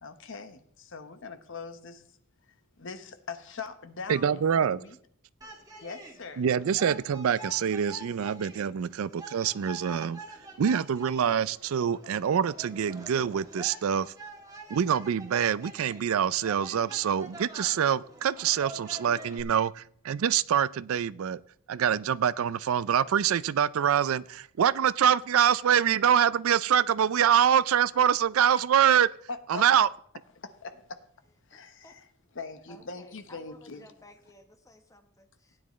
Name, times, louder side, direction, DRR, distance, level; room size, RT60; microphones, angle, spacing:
voice 1, 0.0-2.0 2.8-5.0 5.8-6.4 29.3-29.6 30.4-31.0 31.5-32.1 32.3-33.9, left 4 dB, 60° left, 1.0 m, -41 dB
voice 2, 4.1-4.8 6.4-10.2 10.6-14.1 14.7-21.4 21.7-29.1 29.5-29.9, right 8 dB, 70° right, 0.4 m, -25 dB
sound 1, 5.4-19.4, right 2 dB, 15° right, 1.8 m, -46 dB
voice 3, 31.5-32.0 32.7-35.6, left 1 dB, 15° left, 1.1 m, -55 dB
16.0 x 9.8 x 3.1 m
head